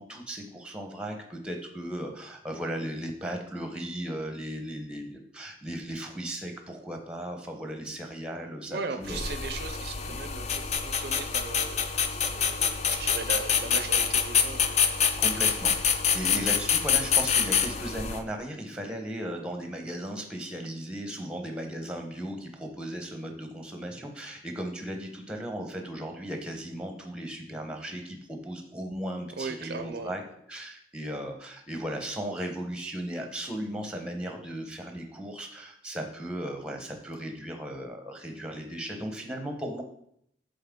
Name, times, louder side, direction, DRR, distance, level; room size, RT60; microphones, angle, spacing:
voice 1, 0.0-9.2 10.0-10.2 15.2-30.2 30.5-39.8, right 1 dB, 5° right, 4 dB, 0.7 m, -36 dB
voice 2, 8.7-11.9 12.2-15.2 29.4-30.2, right 4 dB, 55° right, 7 dB, 0.4 m, -38 dB
sound 1, 9.1-18.2, left 7 dB, 35° left, 0.4 m, -26 dB
7.3 x 4.0 x 3.6 m, 0.71 s
head